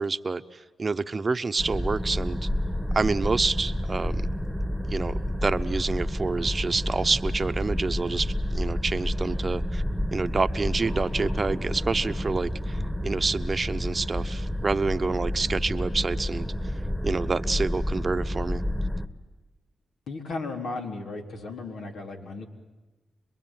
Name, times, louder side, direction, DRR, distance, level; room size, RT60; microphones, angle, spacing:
voice 1, 0.0-2.5 2.9-4.3 4.9-9.8 10.1-16.5 17.0-18.6, right 4 dB, 40° right, 11 dB, 1.0 m, -28 dB
sound 1, 1.6-19.1, equal, 5° left, 1.6 m, -29 dB
voice 2, 20.1-22.4, left 3 dB, 80° left, 1 dB, 4.0 m, -35 dB
26.5 x 22.0 x 9.2 m, 1.2 s
cardioid pair, 70°, 0 cm